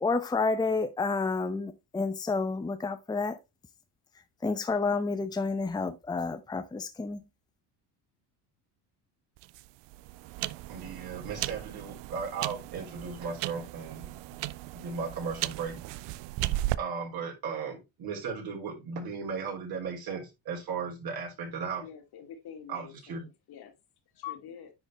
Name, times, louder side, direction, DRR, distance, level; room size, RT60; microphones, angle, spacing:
voice 1, 0.0-3.4 4.4-7.2, left 4 dB, 10° left, 0.7 m, -30 dB
sound 1, 9.4-16.7, right 17 dB, 70° right, 0.6 m, -36 dB
voice 2, 10.7-14.3 14.7-15.8 16.8-21.8 22.7-23.3, right 5 dB, 55° right, 4.2 m, -36 dB
voice 3, 21.8-23.7 24.1-24.7, left 10 dB, 55° left, 2.4 m, -45 dB
10.0 x 4.3 x 3.2 m
cardioid pair, 110°, 44 cm